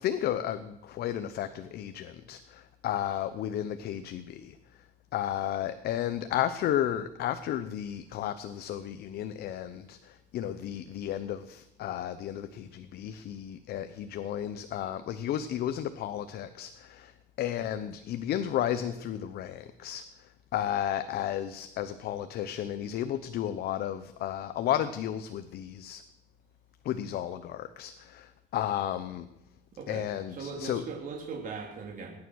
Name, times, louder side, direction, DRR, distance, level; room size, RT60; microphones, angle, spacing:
voice 1, 0.0-4.6 5.1-26.0 26.8-29.3 29.9-30.9, left 11 dB, 70° left, 11 dB, 0.8 m, -33 dB
voice 2, 30.3-32.1, right 4 dB, 50° right, 0 dB, 3.6 m, -39 dB
20.5 x 9.7 x 6.3 m, 0.88 s
cardioid pair, 110°, 17 cm